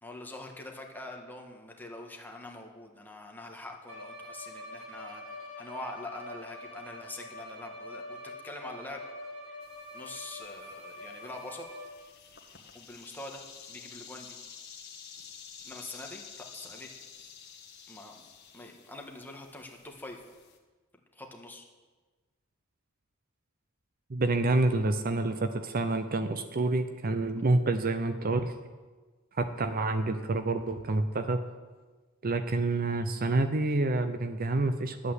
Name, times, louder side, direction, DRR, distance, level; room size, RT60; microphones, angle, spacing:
voice 1, 0.0-9.0 9.5-9.6 9.9-11.7 12.7-14.4 15.6-16.9 17.9-18.2 18.5-20.2 21.1-21.7, left 2 dB, 10° left, 1 dB, 1.6 m, -44 dB
Bowed string instrument, 3.9-12.1, left 1 dB, 85° right, 3.7 m, -45 dB
sound 1, 9.6-20.6, left 7 dB, 55° left, 1.6 m, -50 dB
voice 2, 24.1-28.5 29.4-31.4 32.2-35.1, right 2 dB, 45° right, 9 dB, 0.6 m, -28 dB
11.0 x 8.3 x 8.0 m, 1.3 s
head